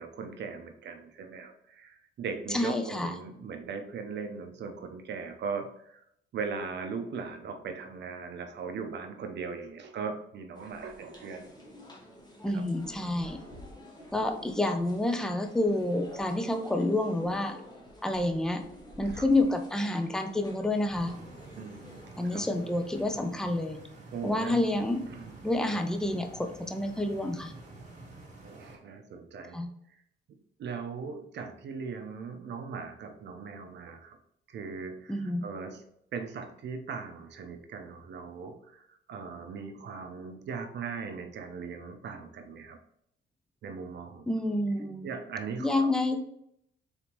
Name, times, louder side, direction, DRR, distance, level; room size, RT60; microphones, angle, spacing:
voice 1, 0.0-6.0 6.3-11.5 12.5-12.6 14.1-14.3 19.0-19.3 21.6-22.4 24.1-24.6 25.1-25.4 28.4-29.6 30.3-34.2 34.5-35.8 36.1-42.8 43.6-44.5 45.0-45.9, right 5 dB, 60° right, 6 dB, 0.6 m, -39 dB
voice 2, 2.5-3.1 12.4-13.4 14.1-17.6 18.0-18.6 19.0-21.1 22.2-23.8 24.2-25.0 25.4-27.5 29.5-29.7 35.1-35.4 44.3-45.1 45.6-46.3, left 1 dB, 5° left, 6 dB, 0.5 m, -28 dB
sound 1, 10.5-23.2, equal, 20° left, 1.0 m, -49 dB
Stream, 20.9-28.8, right 2 dB, 40° right, 1.6 m, -49 dB
4.0 x 3.5 x 2.9 m, 0.73 s
cardioid pair, 90°, 20 cm